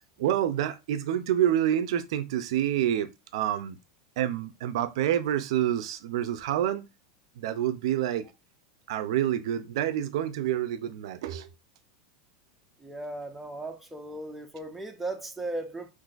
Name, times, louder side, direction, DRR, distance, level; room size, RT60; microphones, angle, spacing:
voice 1, 0.0-3.8 4.2-6.9 7.4-8.2 8.9-11.5, right 11 dB, 70° right, 0.4 m, -28 dB
voice 2, 12.8-15.9, right 2 dB, 5° right, 0.5 m, -37 dB
3.8 x 2.5 x 2.4 m
supercardioid pair, 140°, 3 cm